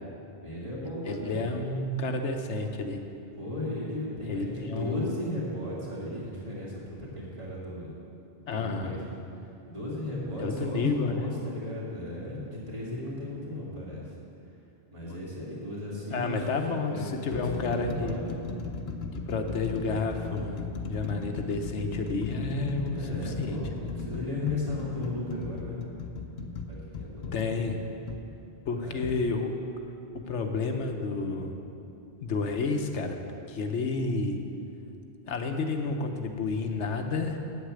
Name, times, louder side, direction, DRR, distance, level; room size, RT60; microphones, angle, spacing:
voice 1, 0.4-1.4 3.4-7.9 8.4-9.0 9.7-14.0 14.9-16.4 16.9-18.2 22.9-25.8 26.7-27.5 28.8-29.1, left 1 dB, 25° right, -6 dB, 2.6 m, -35 dB
voice 2, 1.0-3.0 4.3-5.1 8.5-9.0 10.4-11.3 16.1-18.2 19.3-23.9 27.3-27.8 28.7-29.5 30.1-31.6 32.2-33.2 33.5-34.4 35.3-37.4, left 3 dB, 85° left, 5 dB, 1.2 m, -30 dB
sound 1, 15.0-15.3 16.2-16.3 17.0-28.3 29.0-29.2, left 4 dB, 65° left, 1.0 m, -37 dB
8.1 x 8.1 x 9.0 m, 2.7 s
omnidirectional pair, 1.2 m